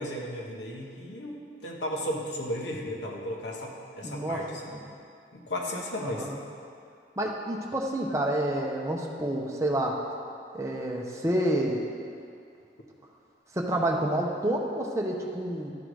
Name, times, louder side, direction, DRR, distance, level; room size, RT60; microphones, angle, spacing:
voice 1, 0.0-4.4 5.3-6.3, left 1 dB, 80° left, 0 dB, 1.0 m, -34 dB
voice 2, 4.0-4.4 4.7-4.8 6.0-6.4 7.2-10.0 10.5-11.8 13.5-15.7, right 1 dB, 15° right, -1 dB, 0.7 m, -29 dB
11.5 x 3.8 x 4.7 m, 2.3 s
head